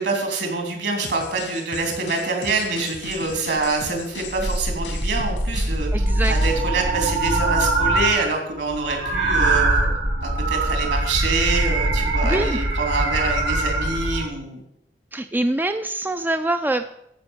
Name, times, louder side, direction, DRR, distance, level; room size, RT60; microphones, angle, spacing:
voice 1, 0.0-5.9 6.3-9.9 10.2-14.6, right 3 dB, 65° right, 3 dB, 3.1 m, -25 dB
sound 1, 1.0-6.6, left 3 dB, 90° left, 2.1 m, -37 dB
sound 2, 3.1-3.2 3.6-3.9 4.2-8.3 8.6-14.3, right 2 dB, 90° right, 2.3 m, -22 dB
voice 2, 5.9-6.4 12.2-12.6 15.1-16.9, right 1 dB, 10° right, 8 dB, 0.4 m, -24 dB
14.0 x 5.5 x 7.2 m, 0.78 s
head